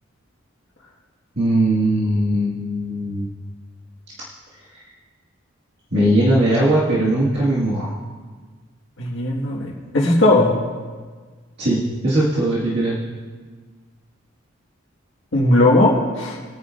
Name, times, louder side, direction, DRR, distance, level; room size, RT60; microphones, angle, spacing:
voice 1, 1.4-3.3 5.9-7.9 11.6-13.0, right 1 dB, 55° right, -8 dB, 2.0 m, -19 dB
voice 2, 9.0-10.5 15.3-16.4, left 1 dB, 70° left, -5 dB, 1.8 m, -17 dB
22.0 x 9.4 x 2.5 m, 1.5 s
head